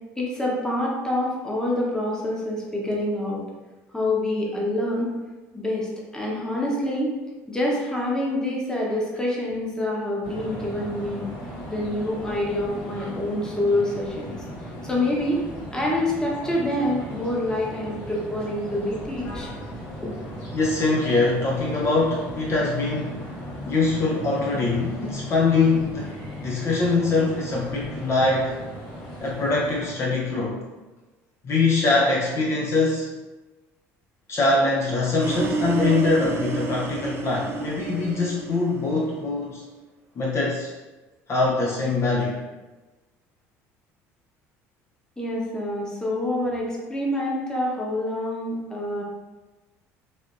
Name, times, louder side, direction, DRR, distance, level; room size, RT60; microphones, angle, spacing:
voice 1, 0.2-3.4 3.9-5.1 5.5-7.1 7.5-11.3 11.7-14.4 14.8-15.4 15.7-19.5 20.0-20.1 45.2-49.0, left 1 dB, 10° left, -3 dB, 0.9 m, -26 dB
sound 1, 10.2-29.9, equal, 80° left, 1.5 m, -37 dB
voice 2, 20.5-23.2 23.7-26.2 26.4-28.6 29.2-30.6 31.4-33.1 34.3-39.6 40.2-40.7 41.3-42.4, left 3 dB, 40° left, -4 dB, 0.6 m, -23 dB
sound 2, 35.2-39.3, right 4 dB, 35° right, 0.5 m, -30 dB
3.3 x 2.5 x 2.5 m, 1.2 s
supercardioid pair, 80°, 7 cm